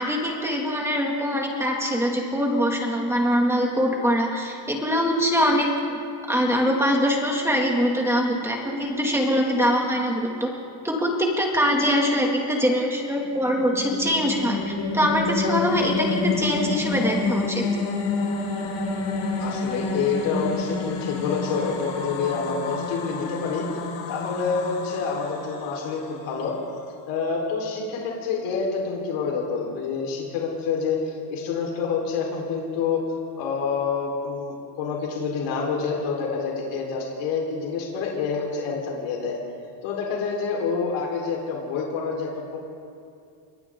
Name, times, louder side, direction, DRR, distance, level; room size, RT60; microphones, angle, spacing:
voice 1, 0.0-6.0 6.3-10.5 10.8-17.6, equal, 5° right, -1 dB, 2.4 m, -23 dB
sound 1, 13.2-26.6, left 3 dB, 65° left, 5.5 m, -29 dB
voice 2, 19.4-23.6 24.1-26.6 27.1-33.0 33.4-39.4 39.8-42.6, left 5 dB, 90° left, -2 dB, 4.5 m, -27 dB
28.5 x 24.5 x 3.9 m, 2.4 s
cardioid pair, 175°, 49 cm